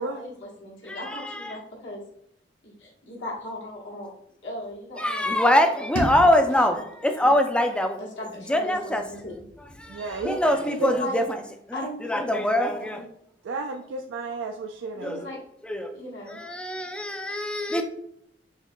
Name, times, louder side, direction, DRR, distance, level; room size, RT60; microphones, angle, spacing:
voice 1, 0.0-2.0 2.6-4.1 4.4-5.8 6.2-6.4 6.7-6.9 7.2-7.3 8.2-9.3 10.6-11.2 11.7-13.0 15.0-15.4 15.9-16.4, left 1 dB, 80° left, -4 dB, 1.2 m, -37 dB
voice 2, 0.9-1.6 5.0-9.0 9.8-11.4 11.7-13.0 15.0-15.3 15.6-16.0 16.3-17.8, left 1 dB, 5° left, 6 dB, 0.3 m, -24 dB
sound 1, 5.9-8.9, left 1 dB, 75° right, 1.4 m, -35 dB
voice 3, 9.9-10.9 13.4-15.2, right 3 dB, 90° right, 3 dB, 0.3 m, -32 dB
5.5 x 2.8 x 2.2 m, 0.70 s
head